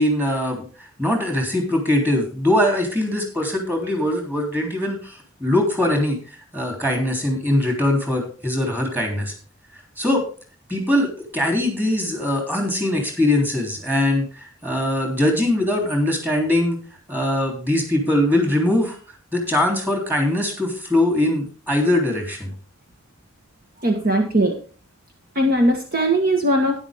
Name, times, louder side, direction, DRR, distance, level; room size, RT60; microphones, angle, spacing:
voice 1, 0.0-9.3 10.0-10.2 10.7-16.8 17.1-19.0 19.3-22.5, left 1 dB, 10° right, 2 dB, 3.3 m, -21 dB
voice 2, 23.8-24.6 25.3-26.8, right 1 dB, 45° right, 3 dB, 1.5 m, -19 dB
12.0 x 10.5 x 3.6 m, 0.38 s
head